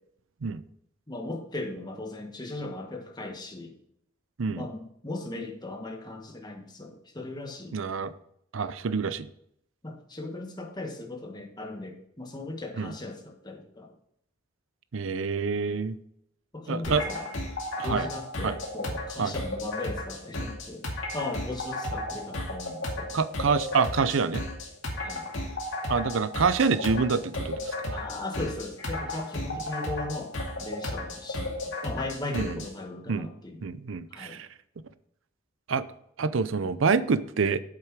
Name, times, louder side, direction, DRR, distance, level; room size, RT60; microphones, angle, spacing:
voice 1, 1.1-3.7 4.5-7.8 9.8-13.9 16.5-17.3 17.8-23.2 25.0-25.3 27.9-30.3 30.6-33.6 34.1-34.4, left 2 dB, 20° left, 2 dB, 1.4 m, -37 dB
voice 2, 7.7-8.1 8.5-9.3 12.8-12.9 14.9-16.0 16.7-17.0 17.8-18.1 18.4-18.5 19.2-19.3 23.1-24.5 25.9-28.0 32.3-32.6 33.1-33.3 33.6-34.5 35.7-35.9 36.2-37.6, right 5 dB, 75° right, 14 dB, 0.6 m, -27 dB
sound 1, 16.8-32.7, left 1 dB, 70° left, 2.2 m, -34 dB
8.4 x 7.6 x 4.8 m, 0.72 s
head